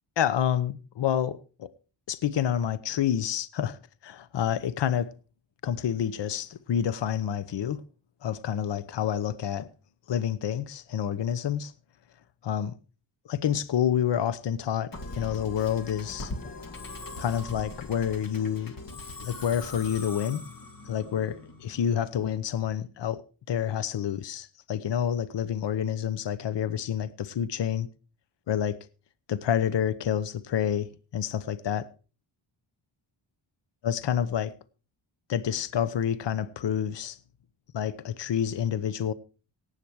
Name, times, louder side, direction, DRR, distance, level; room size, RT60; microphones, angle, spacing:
voice 1, 0.2-1.7 2.1-5.1 5.6-7.8 8.2-9.7 10.1-11.7 12.4-12.7 13.3-16.3 17.2-18.7 19.2-20.5 20.9-23.2 23.5-27.9 28.5-28.9 29.3-31.9 33.8-34.5 35.3-37.2 37.7-39.1, left 9 dB, 60° left, 0.9 m, -28 dB
Musical instrument, 14.9-22.2, left 2 dB, 45° left, 2.2 m, -41 dB
17.5 x 8.4 x 4.7 m
cardioid pair, 95°, 48 cm